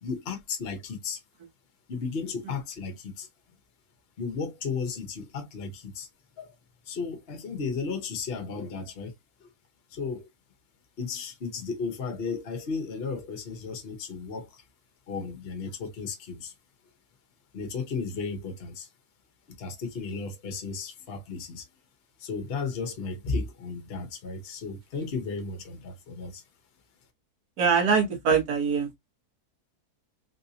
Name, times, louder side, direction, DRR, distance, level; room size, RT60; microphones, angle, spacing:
voice 1, 0.0-1.2 1.9-3.3 4.2-6.1 6.4-6.5 6.9-9.1 9.4-9.5 9.9-10.3 11.0-14.6 15.1-16.5 17.5-18.9 19.5-21.6 22.2-26.4, left 4 dB, 45° left, 1.0 m, -34 dB
voice 2, 27.6-28.9, right 6 dB, 75° right, 1.7 m, -23 dB
3.9 x 2.6 x 2.7 m
omnidirectional pair, 1.7 m